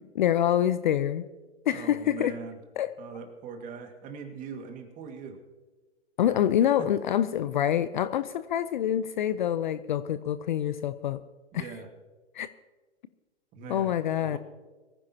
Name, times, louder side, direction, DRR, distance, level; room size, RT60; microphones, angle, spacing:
voice 1, 0.1-1.2 1.7-2.3 2.8-2.9 6.2-11.2 11.5-11.7 12.3-12.5 13.7-14.4, left 10 dB, 45° left, 14 dB, 0.6 m, -26 dB
voice 2, 1.7-2.6 3.0-5.4 6.2-6.4 6.8-6.9 11.5-11.9 13.5-13.9 14.2-14.4, right 5 dB, 20° right, 5 dB, 1.8 m, -41 dB
23.0 x 15.0 x 2.8 m, 1.3 s
hypercardioid pair, 130°, 35 cm